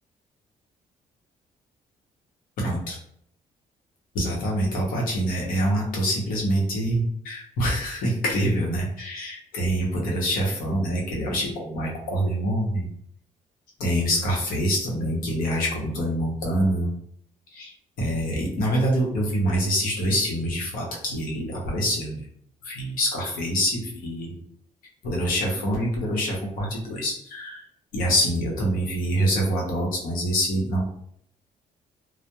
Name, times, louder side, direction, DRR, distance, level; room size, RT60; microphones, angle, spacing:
voice 1, 2.6-3.0 4.1-12.9 13.8-16.9 17.5-17.7 18.0-22.3 22.6-24.4 25.0-27.6 27.9-30.8, equal, 90° left, -2 dB, 0.8 m, -25 dB
2.9 x 2.0 x 2.2 m, 0.68 s
cardioid pair, 125°, 14 cm